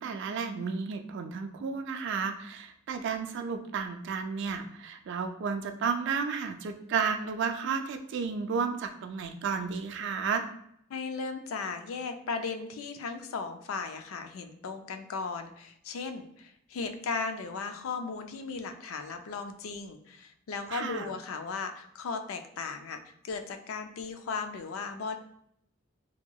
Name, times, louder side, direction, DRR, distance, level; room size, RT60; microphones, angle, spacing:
voice 1, 0.0-10.4 20.7-21.1, right 5 dB, 60° right, 7 dB, 0.3 m, -32 dB
voice 2, 10.9-23.0 23.2-25.2, left 4 dB, 85° left, 7 dB, 0.4 m, -36 dB
2.8 x 2.7 x 2.2 m, 0.72 s
head